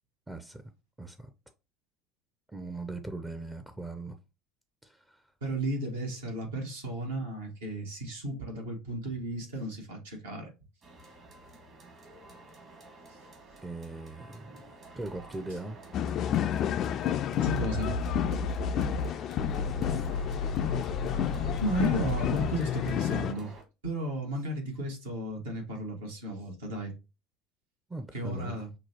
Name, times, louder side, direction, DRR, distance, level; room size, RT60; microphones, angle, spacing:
voice 1, 0.3-0.6 1.0-1.3 2.5-4.2 4.8-5.3 13.6-15.8 19.4-20.0 27.9-28.6, right 2 dB, 15° right, 0.5 m, -40 dB
voice 2, 5.4-10.5 13.1-13.2 17.4-18.0 21.6-23.5 23.8-26.9 28.1-28.7, right 1 dB, 75° right, 1.4 m, -34 dB
sound 1, 10.8-23.6, right 2 dB, 45° right, 1.5 m, -50 dB
sound 2, 15.9-23.3, left 10 dB, 45° left, 0.3 m, -31 dB
sound 3, 17.4-19.1 19.4-22.5, left 3 dB, 80° left, 0.7 m, -33 dB
5.8 x 2.3 x 2.9 m
figure-of-eight pair, 70°, 0 cm